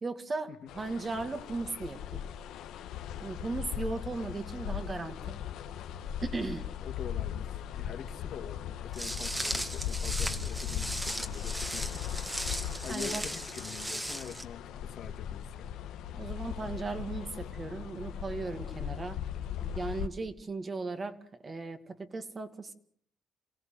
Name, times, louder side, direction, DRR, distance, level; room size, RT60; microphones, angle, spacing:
voice 1, 0.0-2.2 3.2-5.4 6.2-6.7 12.9-13.3 16.1-19.2 19.6-21.2 21.4-22.7, right 3 dB, 35° right, 8 dB, 2.2 m, -37 dB
sound 1, 0.7-20.1, left 9 dB, 90° left, 1.6 m, -38 dB
voice 2, 6.8-12.0 12.8-15.7, left 8 dB, 65° left, 6 dB, 2.1 m, -44 dB
Walk footsteps, 8.9-14.4, right 1 dB, 10° right, 2.0 m, -37 dB
28.0 x 16.5 x 8.0 m, 0.63 s
cardioid pair, 90°, 0 cm